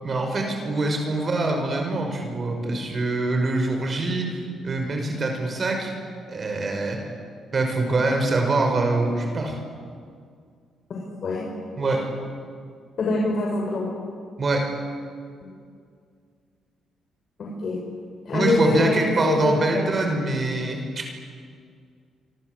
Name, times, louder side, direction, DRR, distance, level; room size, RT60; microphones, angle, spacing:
voice 1, 0.0-5.9 6.3-7.1 7.5-9.6 11.8-12.1 14.4-14.7 18.3-21.1, right 2 dB, 40° right, 3 dB, 5.8 m, -24 dB
voice 2, 10.9-11.4 13.0-13.9 15.4-15.5 17.4-17.8 18.2-19.8, left 2 dB, 55° left, -2 dB, 6.7 m, -25 dB
27.5 x 25.5 x 8.3 m, 2.2 s
cardioid pair, 90°, 0 cm